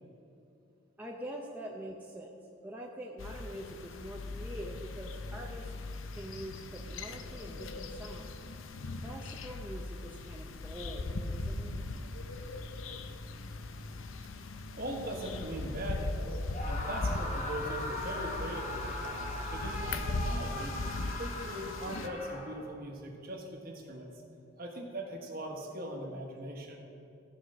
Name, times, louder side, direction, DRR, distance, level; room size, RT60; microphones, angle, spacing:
voice 1, 1.0-2.3 2.6-5.7 6.1-8.4 9.0-11.7, right 1 dB, 10° right, -2 dB, 0.6 m, -44 dB
sound 1, 3.2-22.1, left 2 dB, 80° left, 0.6 m, -39 dB
voice 2, 14.8-16.3 16.6-20.8 21.2-24.1 24.6-26.8, right 1 dB, 45° right, 1 dB, 1.4 m, -40 dB
Screaming, 16.5-22.8, left 1 dB, 35° left, 1.1 m, -40 dB
14.0 x 4.9 x 6.3 m, 2.8 s
head